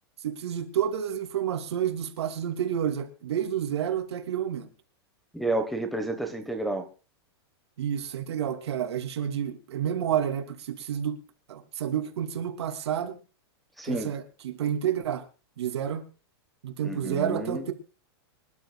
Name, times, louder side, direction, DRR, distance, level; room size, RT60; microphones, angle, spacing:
voice 1, 0.2-4.7 7.8-11.2 11.5-13.2 13.9-15.2 15.6-16.0 16.6-17.7, right 9 dB, 75° right, 2.9 m, -29 dB
voice 2, 5.3-6.9 13.8-14.1 16.8-17.6, right 2 dB, ahead, 1.2 m, -30 dB
25.5 x 12.0 x 2.3 m
supercardioid pair, 170°, 14 cm